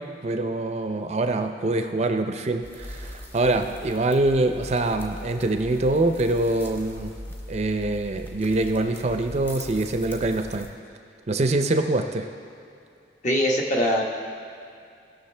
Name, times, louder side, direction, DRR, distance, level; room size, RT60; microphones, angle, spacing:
voice 1, 0.0-7.2 7.5-10.7 11.3-12.3, right 2 dB, 40° right, 6 dB, 0.5 m, -24 dB
sound 1, 2.6-10.7, equal, 10° left, 0.9 m, -40 dB
voice 2, 13.2-14.0, equal, 45° left, 0 dB, 1.1 m, -22 dB
17.5 x 6.2 x 3.3 m, 2.5 s
head